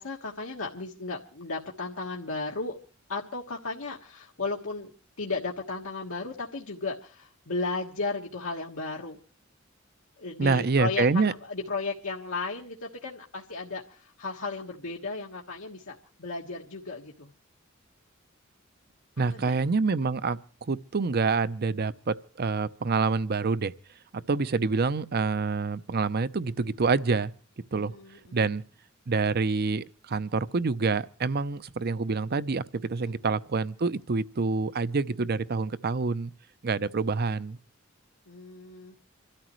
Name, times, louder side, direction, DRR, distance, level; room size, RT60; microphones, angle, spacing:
voice 1, 0.0-2.8 3.1-4.9 5.2-9.2 10.2-17.3 19.2-19.6 27.7-28.4 33.0-33.2 38.3-39.0, left 3 dB, 90° left, 1.5 m, -35 dB
voice 2, 10.4-11.3 19.2-23.7 24.1-27.3 27.7-28.0 28.3-28.6 29.1-36.3 36.6-37.6, right 4 dB, 50° right, 0.6 m, -27 dB
27.0 x 13.0 x 3.1 m
head